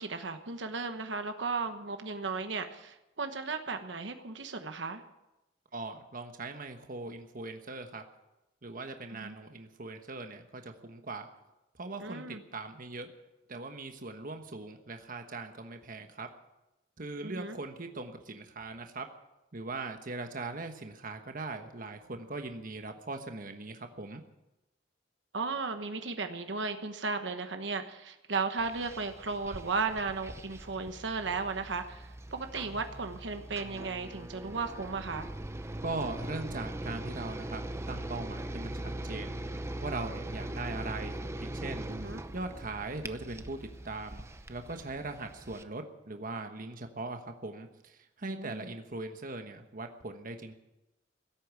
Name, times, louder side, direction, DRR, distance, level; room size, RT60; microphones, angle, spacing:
voice 1, 0.0-5.0 9.1-9.3 12.0-12.4 17.2-17.6 25.3-35.3 41.9-42.2 48.3-48.7, right 4 dB, 65° right, 7 dB, 1.2 m, -35 dB
voice 2, 5.7-8.0 8.6-11.3 11.8-13.1 13.5-16.3 17.0-19.1 19.5-24.2 35.8-37.6 37.9-50.5, right 3 dB, 45° right, 6 dB, 1.2 m, -40 dB
sound 1, 28.6-45.6, right 1 dB, 15° right, 0.7 m, -41 dB
16.5 x 8.6 x 9.4 m, 0.96 s
head